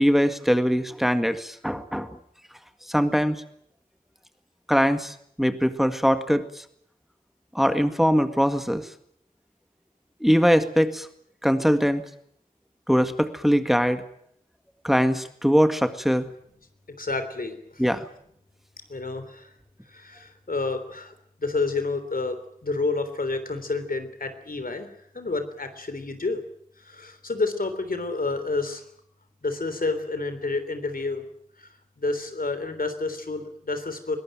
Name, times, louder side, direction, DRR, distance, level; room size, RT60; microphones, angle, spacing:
voice 1, 0.0-2.1 2.9-3.4 4.7-6.4 7.6-8.9 10.2-11.1 11.4-12.0 12.9-14.0 14.8-16.3 17.8-18.1, equal, ahead, 9 dB, 1.9 m, -22 dB
voice 2, 17.0-17.8 18.9-19.5 19.9-22.4 22.6-24.9 25.1-26.4 26.8-28.8 29.4-31.3 31.6-31.7 32.0-34.2, left 3 dB, 75° left, 9 dB, 3.5 m, -29 dB
22.5 x 19.5 x 9.1 m, 0.67 s
wide cardioid pair, 60°, 15 cm